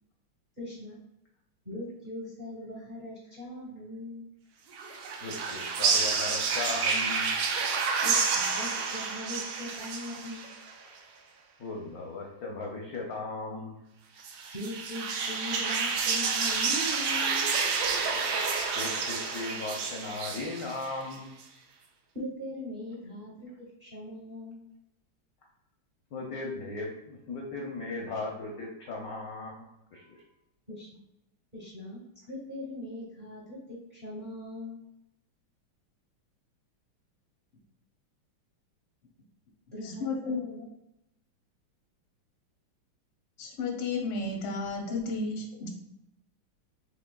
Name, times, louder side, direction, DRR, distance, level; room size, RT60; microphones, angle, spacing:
voice 1, 0.6-1.0 1.6-4.2 8.0-10.4 14.5-17.6 22.1-24.6 30.7-30.9 31.5-32.0 32.3-34.8 39.7-40.7, left 1 dB, 40° right, -5 dB, 0.7 m, -40 dB
sound 1, 4.7-10.7 14.2-21.2, right 5 dB, 80° right, 1.5 m, -29 dB
voice 2, 5.2-7.3 10.8-10.9 11.6-13.7 18.7-21.3 26.1-29.5 29.9-30.2, left 3 dB, 75° left, 0 dB, 0.8 m, -37 dB
voice 3, 39.8-40.4 43.4-45.7, left 3 dB, 90° left, 1 dB, 1.7 m, -32 dB
6.0 x 3.0 x 2.2 m, 0.88 s
omnidirectional pair, 2.3 m